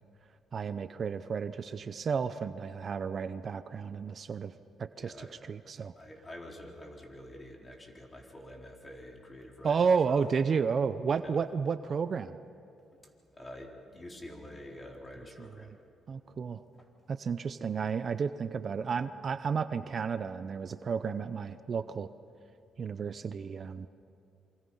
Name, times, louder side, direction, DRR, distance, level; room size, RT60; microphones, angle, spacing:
voice 1, 0.5-4.5 4.8-5.9 9.6-12.4 15.4-15.5 16.1-16.6 17.1-22.1 22.8-23.9, right 6 dB, 45° right, 12 dB, 0.7 m, -32 dB
voice 2, 5.0-5.3 6.0-10.2 11.2-11.4 13.3-15.8 16.7-16.9, left 1 dB, 25° left, 1 dB, 4.0 m, -47 dB
27.0 x 25.0 x 5.6 m, 2.5 s
cardioid pair, 90°, 0 cm